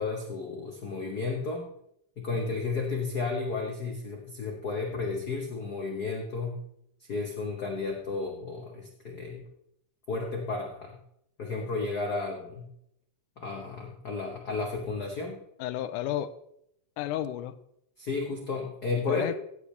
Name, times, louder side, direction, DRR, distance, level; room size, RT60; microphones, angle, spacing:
voice 1, 0.0-1.7 2.2-6.6 7.1-9.4 10.1-11.0 11.4-12.7 13.4-15.4 18.0-19.3, left 4 dB, 65° left, 1 dB, 0.9 m, -33 dB
voice 2, 15.6-16.3 17.0-17.5 19.1-19.3, left 12 dB, 85° left, 13 dB, 2.1 m, -32 dB
15.5 x 8.5 x 3.2 m, 0.75 s
omnidirectional pair, 3.7 m